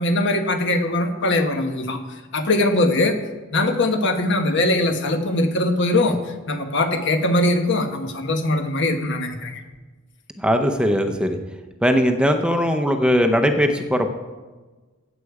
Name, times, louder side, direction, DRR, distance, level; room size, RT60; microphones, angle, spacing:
voice 1, 0.0-2.0 2.3-3.1 3.5-6.2 6.5-9.6, left 2 dB, 60° left, 6 dB, 1.2 m, -21 dB
voice 2, 10.4-11.4 11.8-14.1, equal, 5° right, 6 dB, 0.7 m, -19 dB
15.0 x 8.2 x 4.8 m, 1.3 s
head